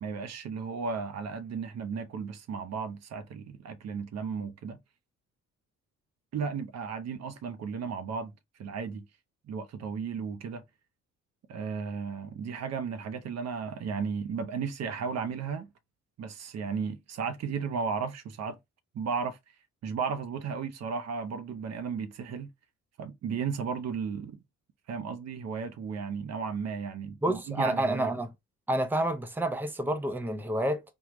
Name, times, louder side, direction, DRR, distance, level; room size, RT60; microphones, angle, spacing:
voice 1, 0.0-4.8 6.3-8.3 8.6-9.0 9.5-10.6 11.5-15.7 16.2-18.6 18.9-19.4 19.8-22.5 23.0-24.4 24.9-28.1, right 5 dB, 60° right, 0.7 m, -34 dB
voice 2, 27.2-28.3 28.7-30.8, right 1 dB, 5° right, 0.6 m, -29 dB
3.5 x 2.3 x 3.0 m
cardioid pair, 90°, 30 cm